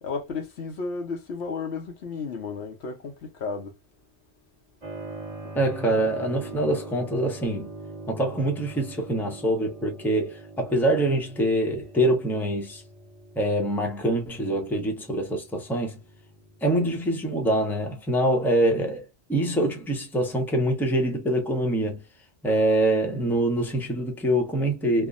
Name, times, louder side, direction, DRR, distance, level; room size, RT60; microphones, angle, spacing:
voice 1, 0.0-3.8, left 4 dB, 75° left, 1.0 m, -33 dB
Keyboard (musical), 4.8-17.2, right 2 dB, 35° right, 1.2 m, -43 dB
voice 2, 5.5-7.7 8.1-12.8 13.3-16.0 16.6-22.0 22.4-25.1, right 1 dB, ahead, 0.7 m, -25 dB
3.4 x 2.2 x 2.4 m
omnidirectional pair, 1.1 m